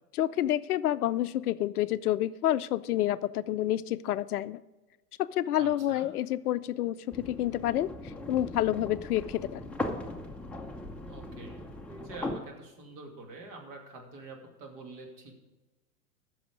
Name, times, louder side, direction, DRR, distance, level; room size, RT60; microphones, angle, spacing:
voice 1, 0.2-4.6 5.2-9.7, left 13 dB, 65° left, 15 dB, 0.5 m, -29 dB
voice 2, 5.5-6.1 11.0-15.5, right 3 dB, 45° right, 2 dB, 2.6 m, -46 dB
sound 1, 7.1-12.3, left 2 dB, 5° left, 0.6 m, -39 dB
14.5 x 6.3 x 5.0 m, 1.1 s
hypercardioid pair, 105°, 48 cm